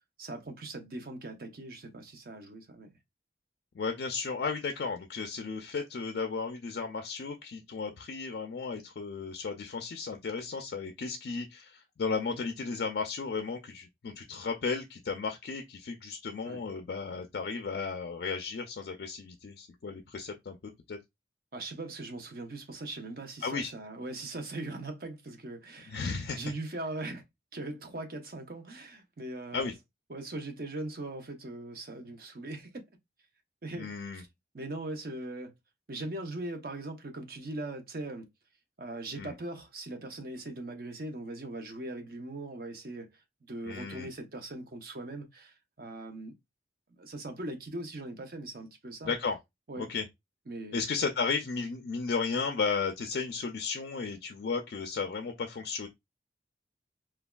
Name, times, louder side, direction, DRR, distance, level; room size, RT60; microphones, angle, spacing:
voice 1, 0.2-2.9 12.3-12.4 16.4-16.6 21.5-26.0 26.3-27.2 27.5-29.7 30.1-32.8 33.6-34.3 34.5-35.5 35.9-38.3 38.8-46.3 46.9-49.1 49.7-49.9 50.5-50.8, right 2 dB, 55° right, 0.6 m, -40 dB
voice 2, 3.7-21.0 23.4-23.7 25.9-26.5 29.5-29.7 33.8-34.2 39.2-39.3 43.7-44.1 49.0-49.4 49.8-50.0 50.7-55.9, left 4 dB, 60° left, 0.4 m, -34 dB
3.2 x 2.3 x 2.2 m
head